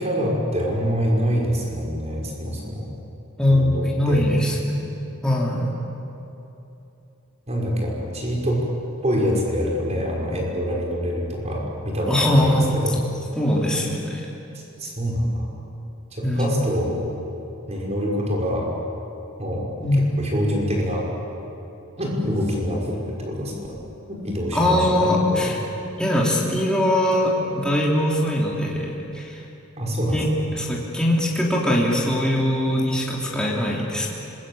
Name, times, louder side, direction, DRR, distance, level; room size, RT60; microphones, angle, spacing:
voice 1, 0.0-2.9 3.5-4.2 7.5-8.6 9.0-13.0 14.5-15.5 16.1-17.0 17.7-18.7 19.4-19.7 20.2-21.1 22.0-23.5 24.1-25.5 29.8-30.5, equal, 35° right, -2 dB, 5.9 m, -25 dB
voice 2, 3.4-4.6 5.2-5.7 12.1-12.8 13.4-14.2 16.2-16.5 19.8-20.0 24.5-25.6 26.0-29.4 30.1-34.1, left 1 dB, 5° left, -4 dB, 3.3 m, -21 dB
26.0 x 22.0 x 8.8 m, 2.9 s
head